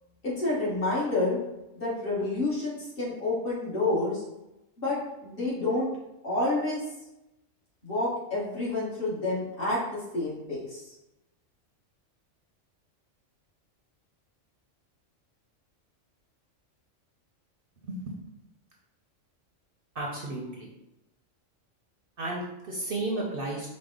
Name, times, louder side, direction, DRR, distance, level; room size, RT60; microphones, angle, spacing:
voice 1, 0.2-1.4 1.8-4.2 4.8-5.9 6.2-6.8 7.8-10.8, left 2 dB, 45° left, -7 dB, 1.5 m, -29 dB
voice 2, 17.8-18.2 19.9-20.7 22.2-23.7, right 2 dB, 55° right, -2 dB, 0.8 m, -33 dB
4.8 x 2.1 x 3.7 m, 0.94 s
omnidirectional pair, 1.3 m